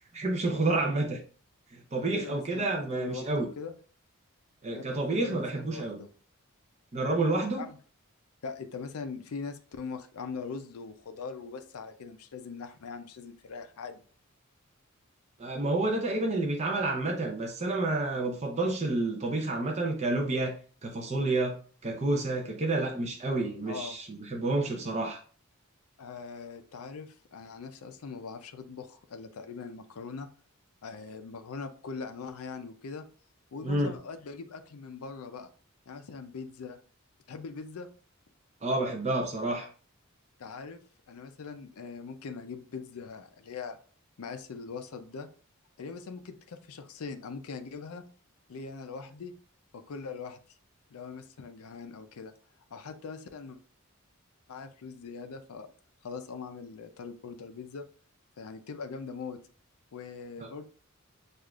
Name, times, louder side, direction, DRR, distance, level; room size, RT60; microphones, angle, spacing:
voice 1, 0.1-1.2 1.7-3.5 4.6-6.0 6.9-7.6 15.4-25.2 33.6-34.0 38.6-39.7 60.4-60.5, right 2 dB, 30° right, 1 dB, 0.6 m, -29 dB
voice 2, 2.0-3.7 4.7-6.1 7.6-7.8 8.4-14.0 23.7-24.0 26.0-30.3 30.8-33.0 33.5-35.5 35.9-36.8 37.3-37.9 40.4-43.8 44.2-45.3 45.8-48.0 48.5-49.3 49.7-50.4 50.9-52.3 52.7-53.6 54.5-55.7 56.0-57.8 58.4-59.4 59.9-60.6, left 5 dB, 85° left, 8 dB, 0.5 m, -41 dB
6.4 x 2.4 x 2.3 m, 0.41 s
head